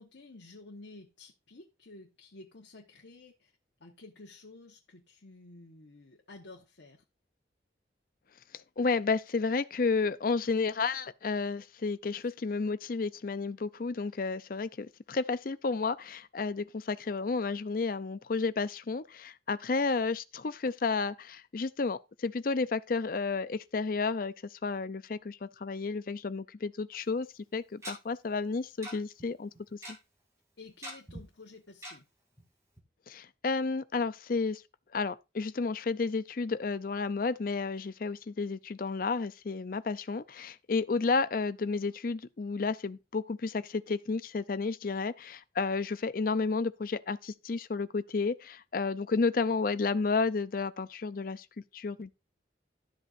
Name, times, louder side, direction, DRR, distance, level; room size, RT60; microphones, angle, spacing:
voice 1, 0.0-3.5 3.8-7.0 30.6-32.1, left 2 dB, 80° left, 1.2 m, -52 dB
voice 2, 8.8-27.3 27.5-29.8 33.1-34.6 34.9-51.5 51.7-52.1, left 4 dB, 50° left, 0.5 m, -31 dB
Tick-tock, 26.9-27.0 27.8-27.9 28.8-28.9 29.2-29.3 29.5-29.9 30.8-31.2 31.8-31.9 32.4-32.5 32.8-32.9, equal, 15° right, 2.8 m, -42 dB
12.5 x 7.8 x 2.5 m
head